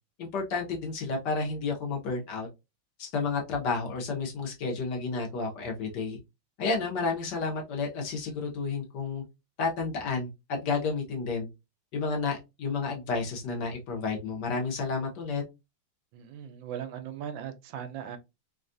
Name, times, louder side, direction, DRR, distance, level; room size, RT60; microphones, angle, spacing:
voice 1, 0.2-2.5 3.0-6.2 6.6-9.2 9.6-11.5 11.9-15.4, left 4 dB, 65° left, 1.3 m, -31 dB
voice 2, 16.1-18.2, right 9 dB, 80° right, 1.3 m, -38 dB
3.4 x 2.3 x 2.5 m
omnidirectional pair, 2.2 m